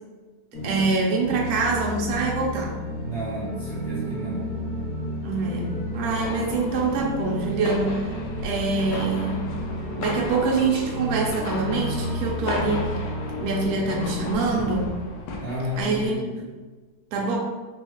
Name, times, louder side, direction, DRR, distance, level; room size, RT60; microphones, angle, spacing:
sound 1, 0.5-14.9, equal, ahead, 0.7 m, -32 dB
voice 1, 0.6-2.8 5.2-8.2 8.4-9.5 10.0-13.0 13.4-14.9 15.8-16.5 17.1-17.4, right 3 dB, 70° right, -2 dB, 1.0 m, -25 dB
voice 2, 3.0-4.5 15.4-16.3, equal, 50° right, -9 dB, 0.7 m, -31 dB
sound 2, 6.0-16.1, left 2 dB, 85° left, 1.2 m, -36 dB
3.9 x 2.3 x 2.9 m, 1.3 s
omnidirectional pair, 1.9 m